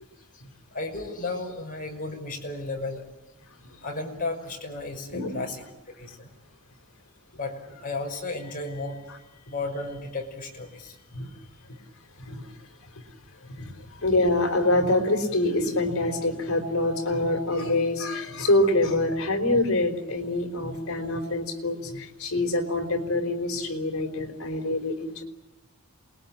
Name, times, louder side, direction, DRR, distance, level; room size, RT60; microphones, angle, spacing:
voice 1, 0.7-3.0 3.8-5.7 6.0-6.3 7.3-11.5, left 2 dB, 40° left, 2 dB, 5.7 m, -34 dB
voice 2, 12.2-12.5 13.5-25.2, left 2 dB, 65° left, 5 dB, 4.5 m, -25 dB
28.0 x 21.5 x 8.8 m, 0.94 s
head